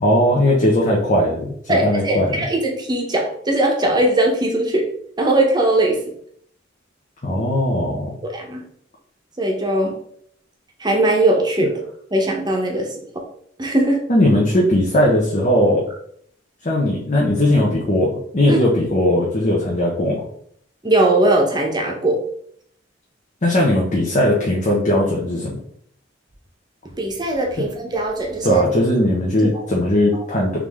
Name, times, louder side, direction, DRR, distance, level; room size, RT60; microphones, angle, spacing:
voice 1, 0.0-2.3 7.2-8.2 14.1-15.8 16.6-20.2 23.4-25.6 28.4-30.7, left 1 dB, 40° left, -3 dB, 0.8 m, -18 dB
voice 2, 1.7-4.9 5.2-6.0 8.2-8.6 9.4-10.0 10.8-11.8 12.1-12.9 13.6-14.0 18.5-18.6 20.8-22.2 27.0-28.6 29.4-29.6, right 1 dB, 25° right, 1 dB, 0.9 m, -19 dB
3.7 x 3.2 x 3.5 m, 0.65 s
head